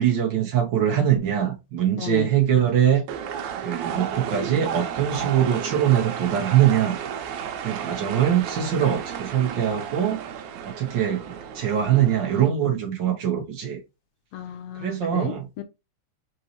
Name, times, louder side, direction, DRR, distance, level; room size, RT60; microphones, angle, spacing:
voice 1, 0.0-3.0 3.6-7.0 7.6-10.2 10.6-13.8 14.8-15.5, right 10 dB, 65° right, 1.1 m, -22 dB
voice 2, 2.0-2.3 14.3-15.6, left 10 dB, 80° left, 1.9 m, -34 dB
sound 1, 3.1-12.5, right 8 dB, 85° right, 2.1 m, -33 dB
4.5 x 4.0 x 3.0 m
omnidirectional pair, 3.3 m